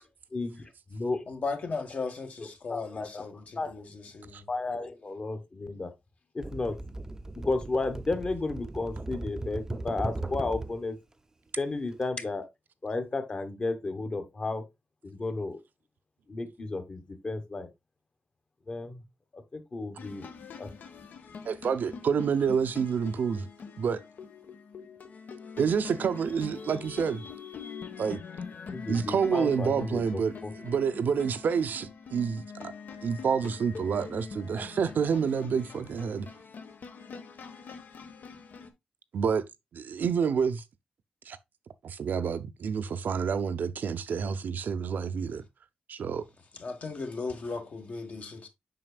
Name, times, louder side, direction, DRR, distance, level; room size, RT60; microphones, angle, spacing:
voice 1, 0.3-1.2 2.7-3.2 3.6-3.7 4.5-5.9 6.3-6.8 7.3-11.0 11.6-12.5 12.8-14.6 15.0-15.6 16.3-17.7 18.7-19.0 19.5-20.3 20.6-20.7 28.7-30.0 30.4-30.5, left 3 dB, 35° left, 1.2 m, -33 dB
voice 2, 1.3-4.4 46.5-48.5, left 4 dB, 55° left, 1.4 m, -36 dB
sound 1, 6.4-10.8 11.9-12.1, right 2 dB, 20° right, 0.5 m, -37 dB
sound 2, 20.0-38.7, left 5 dB, 75° left, 1.1 m, -44 dB
voice 3, 21.4-23.5 23.8-24.0 25.6-27.3 28.0-28.2 28.9-32.7 33.0-36.3 39.1-39.5 39.7-40.6 41.3-41.4 41.8-45.4 45.9-46.3, right 6 dB, 75° right, 0.6 m, -28 dB
7.6 x 5.7 x 2.2 m
wide cardioid pair, 140°, 3 cm